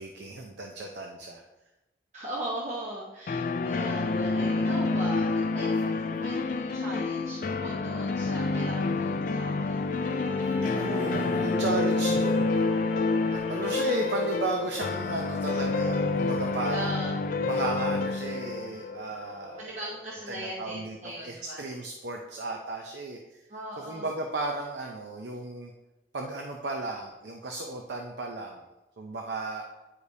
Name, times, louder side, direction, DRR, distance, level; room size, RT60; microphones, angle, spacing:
voice 1, 0.0-1.4 10.7-12.5 13.3-16.9 17.4-19.7 20.3-23.4 23.8-25.7 26.1-28.6 29.0-29.7, right 2 dB, 80° right, 2 dB, 0.6 m, -34 dB
voice 2, 2.1-9.9 16.7-17.2 19.6-21.6 23.5-24.1, right 1 dB, 40° right, -4 dB, 0.9 m, -39 dB
sound 1, 3.3-20.0, left 3 dB, 45° left, 0.3 m, -28 dB
sound 2, 9.7-14.7, left 4 dB, 10° right, 1.0 m, -36 dB
9.7 x 5.0 x 2.7 m, 1.0 s
head